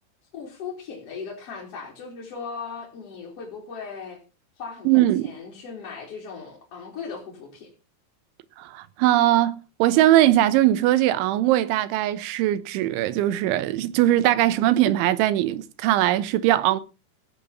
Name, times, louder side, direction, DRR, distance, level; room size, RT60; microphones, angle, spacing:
voice 1, 0.3-4.2 4.6-7.7, left 5 dB, 35° left, 4.0 m, -38 dB
voice 2, 4.9-5.3 8.6-16.8, right 14 dB, 90° right, 3.3 m, -20 dB
17.5 x 7.4 x 5.7 m
omnidirectional pair, 5.3 m